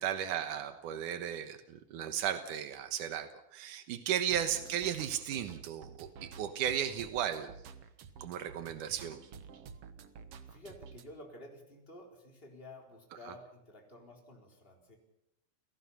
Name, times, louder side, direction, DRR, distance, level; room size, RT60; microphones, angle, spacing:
voice 1, 0.0-7.5 8.2-9.2 13.3-13.4, right 10 dB, 90° right, 10 dB, 2.8 m, -35 dB
sound 1, 4.3-11.0, right 6 dB, 55° right, 2.0 m, -51 dB
voice 2, 10.4-15.0, left 1 dB, 15° left, 2 dB, 4.1 m, -52 dB
29.0 x 18.0 x 5.7 m, 0.86 s
omnidirectional pair, 3.6 m